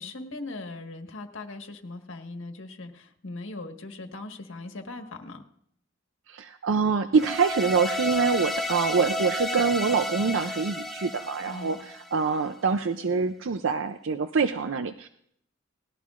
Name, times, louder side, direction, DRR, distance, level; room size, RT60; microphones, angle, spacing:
voice 1, 0.0-5.4 11.4-11.8, left 2 dB, 70° left, 4 dB, 1.6 m, -39 dB
voice 2, 6.3-15.1, right 5 dB, 65° right, 10 dB, 0.5 m, -25 dB
sound 1, 7.1-12.4, left 1 dB, ahead, 0.7 m, -32 dB
19.0 x 15.0 x 2.5 m, 0.70 s
head